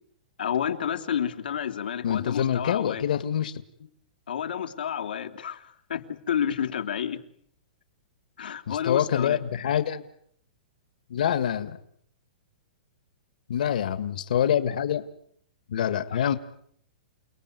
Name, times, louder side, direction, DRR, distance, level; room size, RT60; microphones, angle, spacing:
voice 1, 0.4-3.0 4.3-7.2 8.4-9.4 16.1-16.2, left 8 dB, 90° left, 5 dB, 3.2 m, -30 dB
voice 2, 2.0-3.5 8.7-10.1 11.1-11.8 13.5-15.1 15.7-16.4, left 9 dB, 60° left, 12 dB, 1.8 m, -25 dB
29.5 x 19.5 x 9.5 m, 0.67 s
hypercardioid pair, 175°, 5 cm